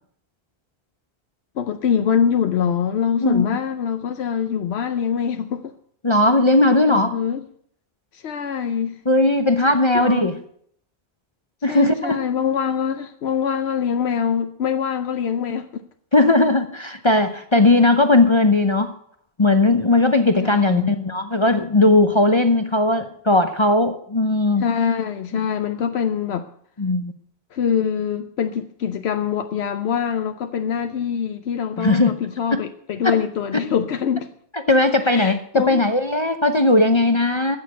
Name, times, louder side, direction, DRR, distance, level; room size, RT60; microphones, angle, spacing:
voice 1, 1.6-5.7 6.9-7.4 8.1-9.0 9.9-10.3 11.7-15.8 20.4-20.9 24.6-26.5 27.5-34.3 35.0-35.8, left 7 dB, 80° left, 1.0 m, -24 dB
voice 2, 6.0-7.1 9.1-10.4 11.6-12.2 16.1-18.9 19.4-24.7 26.8-27.1 31.8-32.1 33.0-33.2 33.5-33.6 34.7-37.6, left 2 dB, 30° left, 0.7 m, -17 dB
14.5 x 6.6 x 8.3 m
omnidirectional pair, 1.1 m